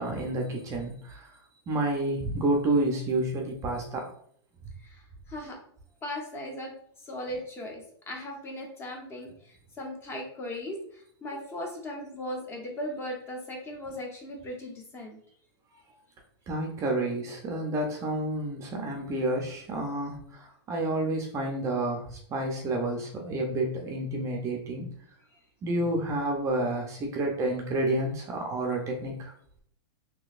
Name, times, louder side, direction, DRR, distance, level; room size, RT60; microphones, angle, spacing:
voice 1, 0.0-1.4 1.7-4.1 16.5-24.9 25.6-29.3, right 1 dB, 20° right, 1 dB, 0.5 m, -29 dB
voice 2, 4.8-5.6 6.0-6.7 7.0-15.2, left 1 dB, 15° left, 1 dB, 0.8 m, -38 dB
3.8 x 2.8 x 2.4 m, 0.63 s
supercardioid pair, 150°, 15 cm